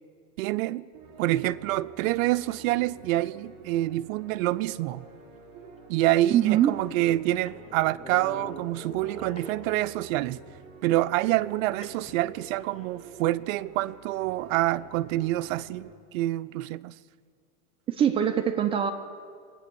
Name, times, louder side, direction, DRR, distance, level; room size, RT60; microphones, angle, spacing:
voice 1, 0.4-0.8 1.2-5.1 5.9-10.4 10.8-16.9, right 16 dB, 65° right, 0.5 m, -27 dB
sound 1, 0.9-15.9, right 4 dB, 50° right, 3.4 m, -49 dB
sound 2, 5.1-5.2 5.8-5.9 6.1-10.1 11.8-12.9, left 2 dB, 15° left, 1.2 m, -46 dB
voice 2, 6.3-6.8 17.9-18.9, right 10 dB, 15° right, 0.3 m, -23 dB
21.5 x 8.6 x 6.8 m
supercardioid pair, 135°, 44 cm